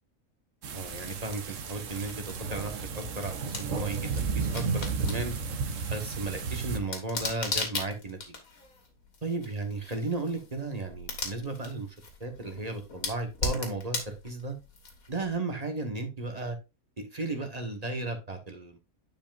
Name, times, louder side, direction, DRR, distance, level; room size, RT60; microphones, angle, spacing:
sound 1, 0.6-6.8, right 5 dB, 65° right, 1.2 m, -33 dB
voice 1, 0.7-5.3 5.9-8.3 9.2-11.9 12.2-14.5 15.1-16.6 17.1-18.8, right 2 dB, 30° right, 1.3 m, -35 dB
sound 2, 0.8-15.3, left 3 dB, 85° left, 2.1 m, -39 dB
9.9 x 5.3 x 2.5 m
omnidirectional pair, 1.4 m